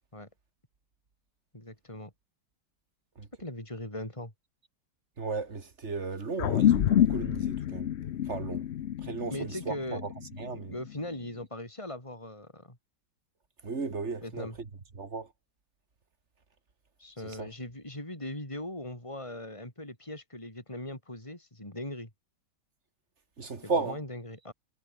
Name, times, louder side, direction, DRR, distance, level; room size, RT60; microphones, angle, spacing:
voice 1, 1.5-2.1 3.4-4.3 9.3-10.0 10.7-12.8 14.2-14.6 17.0-22.1 23.6-24.5, left 1 dB, 15° left, 5.8 m, -40 dB
voice 2, 5.2-7.9 8.3-8.6 9.0-10.1 10.4-10.7 13.6-14.5 14.9-15.3 17.2-17.5 23.4-24.0, right 4 dB, 40° right, 2.3 m, -35 dB
sound 1, 6.4-11.1, left 11 dB, 80° left, 0.6 m, -28 dB
omnidirectional pair, 1.9 m